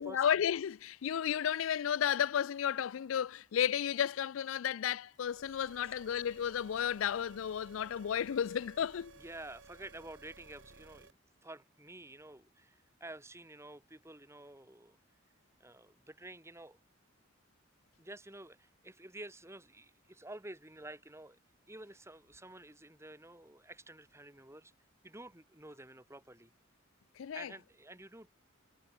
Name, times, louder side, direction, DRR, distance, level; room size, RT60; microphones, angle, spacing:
voice 1, 0.0-9.1 27.2-27.5, left 9 dB, 75° left, 0.4 m, -33 dB
sound 1, 5.1-11.1, right 3 dB, 65° right, 1.8 m, -57 dB
voice 2, 9.2-11.2 11.4-15.0 15.6-16.8 18.0-21.4 21.7-24.7 25.0-26.5 27.3-28.3, right 1 dB, 15° right, 4.4 m, -50 dB
head